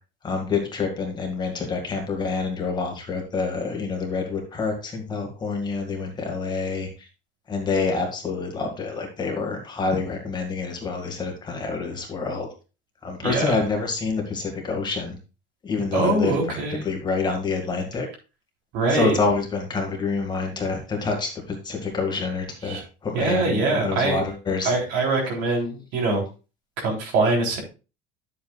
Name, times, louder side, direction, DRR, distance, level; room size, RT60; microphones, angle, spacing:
voice 1, 0.2-6.9 7.5-12.5 13.0-15.2 15.6-16.6 16.8-18.1 18.9-24.7, left 4 dB, 20° left, 2 dB, 1.9 m, -27 dB
voice 2, 13.2-13.5 15.9-16.9 18.7-19.2 22.6-22.8 23.1-24.2 24.6-26.2 26.8-27.6, right 3 dB, 65° right, 0 dB, 3.5 m, -23 dB
9.9 x 7.8 x 2.4 m, 0.32 s
cardioid pair, 165°, 20 cm